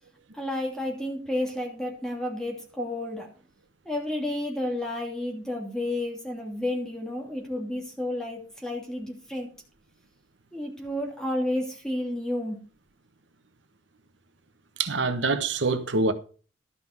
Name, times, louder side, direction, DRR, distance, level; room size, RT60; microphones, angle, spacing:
voice 1, 0.3-3.3 3.8-9.5 10.5-12.6, left 1 dB, 5° left, 2.9 m, -31 dB
voice 2, 14.8-16.1, right 3 dB, 80° right, 1.1 m, -25 dB
12.5 x 5.9 x 6.0 m
head